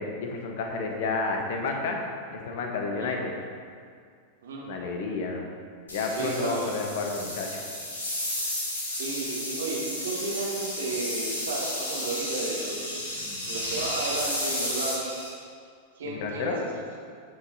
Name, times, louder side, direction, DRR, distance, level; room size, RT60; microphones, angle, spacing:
voice 1, 0.0-2.1 2.3-3.3 4.6-5.4 5.9-7.6 16.1-16.6, left 3 dB, 55° left, 2 dB, 1.2 m, -30 dB
voice 2, 4.4-4.8 6.1-6.8 8.9-12.9 13.5-15.1 16.0-16.6, right 3 dB, 65° right, -2 dB, 1.7 m, -33 dB
sound 1, 5.9-15.3, left 1 dB, 70° left, 1.8 m, -33 dB
15.0 x 5.5 x 2.8 m, 2.2 s
figure-of-eight pair, 90°, 0 cm